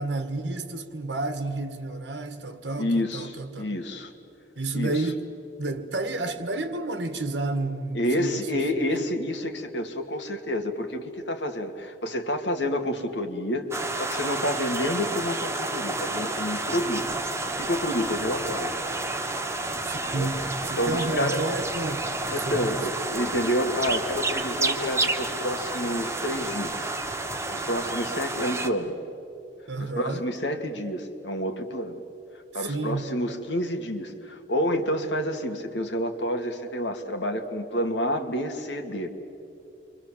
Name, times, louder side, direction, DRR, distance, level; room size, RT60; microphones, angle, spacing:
voice 1, 0.0-3.8 4.5-5.2 5.6-8.5 8.8-9.0 19.8-22.8 29.7-30.2 32.5-33.1, right 2 dB, 75° right, 1.8 m, -31 dB
voice 2, 2.8-4.1 4.7-5.1 7.9-18.8 20.0-20.3 20.8-21.4 22.3-26.9 27.5-29.0 29.8-32.0 32.5-39.1, equal, 80° left, 2.1 m, -29 dB
sound 1, 13.7-28.7, right 2 dB, 15° right, 1.2 m, -30 dB
29.0 x 24.0 x 7.4 m
head